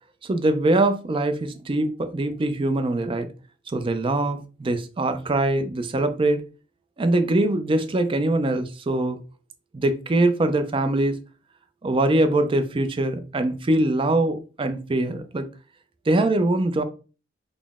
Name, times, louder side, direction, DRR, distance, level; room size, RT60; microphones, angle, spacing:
voice 1, 0.2-3.3 3.7-6.5 7.0-9.2 9.7-11.1 11.8-15.4 16.1-16.8, right 2 dB, 25° right, 8 dB, 0.4 m, -23 dB
4.0 x 2.0 x 3.4 m, 0.35 s
head